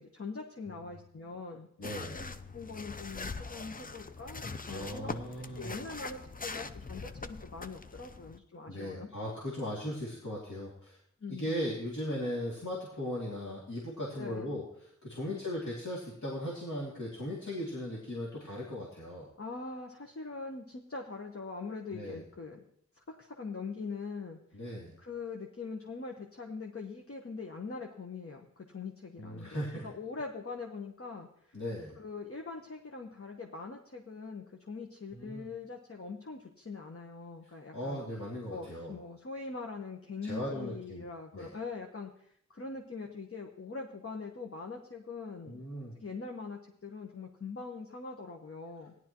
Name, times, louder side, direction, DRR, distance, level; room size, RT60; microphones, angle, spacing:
voice 1, 0.0-1.7 2.1-9.1 11.2-11.5 14.2-14.5 15.3-15.4 19.4-22.6 22.9-24.4 25.0-31.6 32.0-38.0 38.5-45.6 46.0-48.9, left 4 dB, 50° left, 2 dB, 1.1 m, -42 dB
voice 2, 0.7-1.0 1.8-2.2 4.7-5.8 8.7-11.0 11.3-19.3 21.9-22.2 24.5-25.0 29.2-29.9 31.5-32.0 35.1-35.5 37.7-38.9 40.2-41.1 41.3-41.5 45.5-46.0, equal, 90° left, -6 dB, 2.6 m, -38 dB
sound 1, 1.8-8.4, left 3 dB, 30° left, 0.6 m, -42 dB
17.0 x 11.0 x 3.0 m, 0.68 s
wide cardioid pair, 65°, 29 cm